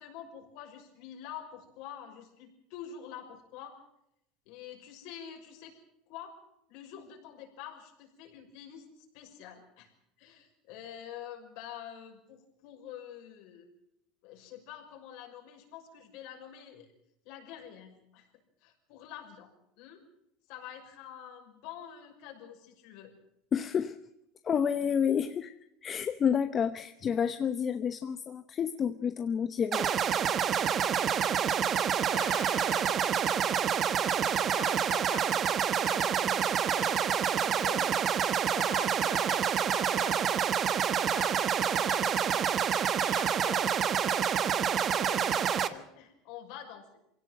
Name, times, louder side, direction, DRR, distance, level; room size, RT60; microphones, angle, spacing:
voice 1, 0.0-3.8 4.5-5.8 6.1-6.3 6.7-9.9 10.2-13.7 14.2-16.9 17.2-18.3 18.6-19.5 19.8-20.0 20.5-23.1 32.1-33.0 34.2-38.0 38.5-40.5 40.9-42.5 43.0-46.8, left 9 dB, 70° left, 2 dB, 5.9 m, -46 dB
voice 2, 23.5-24.0 24.4-25.5 25.8-29.9, left 7 dB, 35° left, 10 dB, 0.9 m, -29 dB
sound 1, 29.7-45.7, right 8 dB, 40° right, 1.4 m, -28 dB
23.5 x 17.0 x 7.8 m, 0.79 s
supercardioid pair, 105°, 0 cm